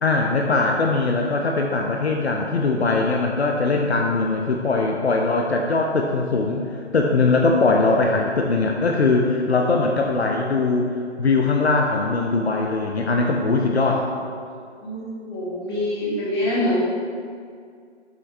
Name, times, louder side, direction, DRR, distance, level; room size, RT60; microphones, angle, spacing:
voice 1, 0.0-14.1, left 3 dB, 65° left, 1 dB, 0.8 m, -21 dB
voice 2, 14.8-16.8, left 1 dB, 20° left, -7 dB, 1.9 m, -25 dB
7.8 x 7.3 x 3.4 m, 2.2 s
figure-of-eight pair, 150°, 35 cm